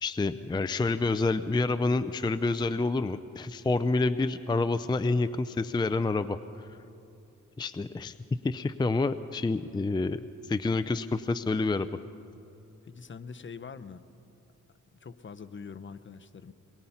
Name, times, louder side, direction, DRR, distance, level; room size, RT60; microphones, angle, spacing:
voice 1, 0.0-6.7 7.6-8.1 8.4-11.9, left 3 dB, 15° left, 12 dB, 0.4 m, -28 dB
voice 2, 12.8-14.1 14.9-16.5, left 5 dB, 40° left, 11 dB, 0.8 m, -44 dB
22.5 x 22.0 x 5.7 m, 2.7 s
wide cardioid pair, 105°, 31 cm